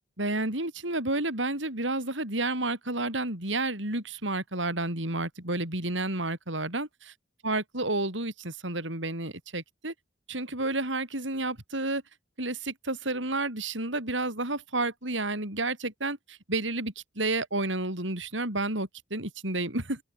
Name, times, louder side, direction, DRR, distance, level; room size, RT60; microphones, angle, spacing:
voice 1, 0.2-7.1 7.4-9.9 10.3-12.0 12.4-20.0, right 2 dB, 75° right, 7.5 m, -31 dB
open air
head